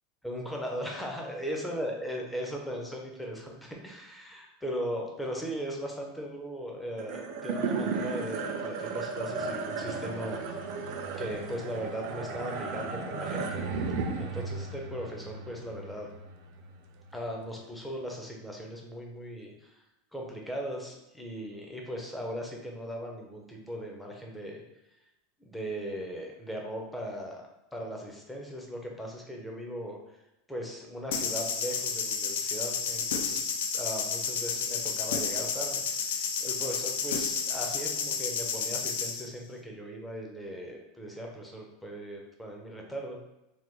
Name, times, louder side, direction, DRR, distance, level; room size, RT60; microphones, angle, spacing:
voice 1, 0.2-10.8 11.2-13.6 14.2-16.1 17.1-19.8 20.1-24.6 25.4-27.4 27.7-30.2 30.5-33.4 33.7-43.2, equal, 5° left, 0 dB, 0.5 m, -38 dB
sound 1, 7.0-17.5, right 4 dB, 60° right, 0.4 m, -35 dB
sound 2, 31.1-39.2, left 6 dB, 85° left, 0.4 m, -31 dB
3.3 x 2.2 x 3.0 m, 0.91 s
supercardioid pair, 150°, 0 cm